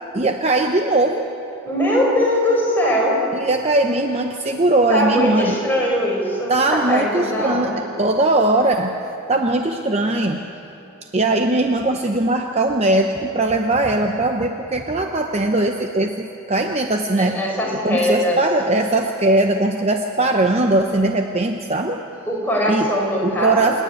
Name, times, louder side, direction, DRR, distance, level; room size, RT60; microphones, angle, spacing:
voice 1, 0.1-1.3 3.3-5.6 6.5-8.9 9.3-10.4 11.1-17.4 17.8-22.0 22.7-22.9 23.2-23.8, right 2 dB, 30° right, 4 dB, 0.7 m, -20 dB
voice 2, 1.6-3.2 4.9-7.8 17.2-18.4 22.3-23.8, equal, 10° left, -3 dB, 4.3 m, -21 dB
27.5 x 10.0 x 9.5 m, 2.9 s
head